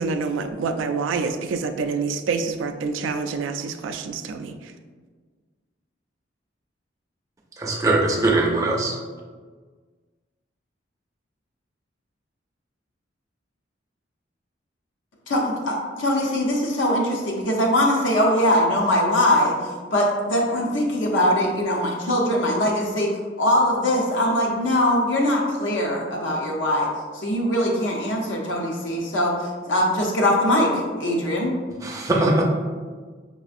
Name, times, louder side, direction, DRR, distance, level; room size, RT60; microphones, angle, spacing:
voice 1, 0.0-4.7, right 4 dB, 80° right, 8 dB, 0.3 m, -27 dB
voice 2, 7.6-9.0 31.8-32.4, right 2 dB, 20° right, -1 dB, 0.5 m, -21 dB
voice 3, 15.3-19.6 19.9-23.1 23.4-31.5, left 1 dB, 75° left, -1 dB, 0.6 m, -22 dB
5.4 x 2.4 x 2.5 m, 1.5 s
head